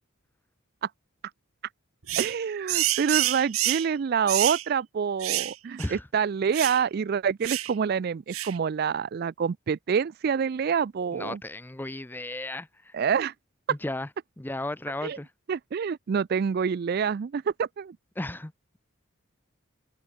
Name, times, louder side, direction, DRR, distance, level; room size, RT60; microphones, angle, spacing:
sound 1, 2.1-2.4 2.7-3.9 4.3-4.6 5.2-5.5 5.8-5.9 6.5-6.8 7.4-7.7 8.3-8.6, right 14 dB, 80° right, 1.5 m, -27 dB
voice 1, 2.2-11.4 12.9-13.3 15.0-15.2 15.5-18.0, right 6 dB, 45° right, 0.3 m, -27 dB
voice 2, 11.1-13.0 13.7-14.1 14.4-15.3 18.2-18.8, left 1 dB, 10° left, 0.5 m, -35 dB
open air
head